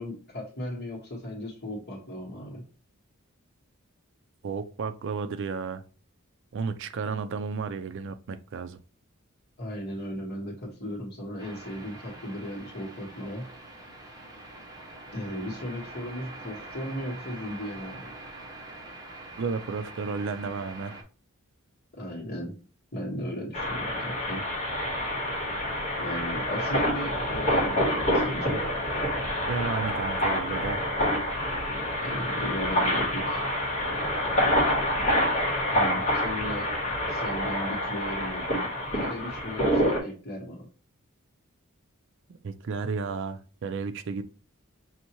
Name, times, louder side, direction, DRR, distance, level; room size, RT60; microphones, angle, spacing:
voice 1, 0.0-2.6 9.6-13.5 15.1-18.1 21.9-22.5 22.9-24.4 26.0-28.6 32.0-33.4 35.7-36.7 37.1-40.7, equal, 50° left, 1.4 m, -36 dB
voice 2, 4.4-5.8 6.5-8.8 19.4-20.9 29.5-30.8 42.4-44.2, right 5 dB, 60° right, 0.4 m, -32 dB
sound 1, 11.4-21.0, right 2 dB, 20° right, 0.9 m, -44 dB
sound 2, 23.5-40.0, equal, 30° left, 1.5 m, -27 dB
5.7 x 2.6 x 2.9 m
head